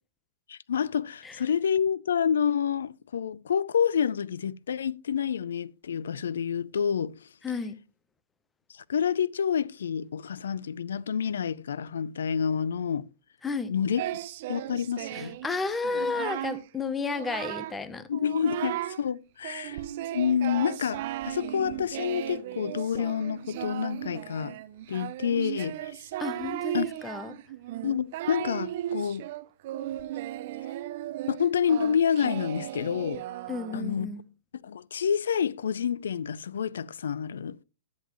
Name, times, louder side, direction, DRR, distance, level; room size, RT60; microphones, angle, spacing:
voice 1, 0.5-7.1 8.7-13.1 13.7-14.0 14.5-15.4 18.1-19.8 20.1-24.6 24.9-26.0 26.7-26.9 27.8-29.2 31.3-33.2 33.7-34.1 34.6-37.6, left 7 dB, 85° left, 0.5 m, -28 dB
voice 2, 7.4-7.7 13.4-13.7 15.1-18.1 26.2-27.3 33.5-34.2, left 4 dB, 10° left, 0.8 m, -32 dB
Singing, 14.0-15.5 15.8-16.6 17.0-17.8 18.1-19.0 19.4-33.9, right 13 dB, 50° right, 0.7 m, -36 dB
10.5 x 9.2 x 3.1 m
hypercardioid pair, 145°, 0 cm